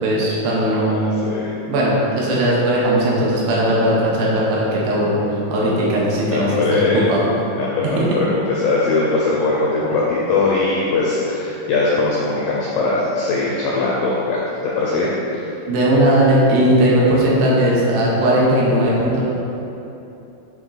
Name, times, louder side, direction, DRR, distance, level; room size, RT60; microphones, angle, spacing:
voice 1, 0.0-1.0 1.7-7.3 8.0-8.1 15.7-19.2, right 1 dB, 80° right, -5 dB, 2.9 m, -17 dB
voice 2, 6.2-7.1 7.6-15.1, left 3 dB, 85° left, -5 dB, 1.9 m, -20 dB
8.9 x 3.0 x 3.8 m, 2.9 s
omnidirectional pair, 4.7 m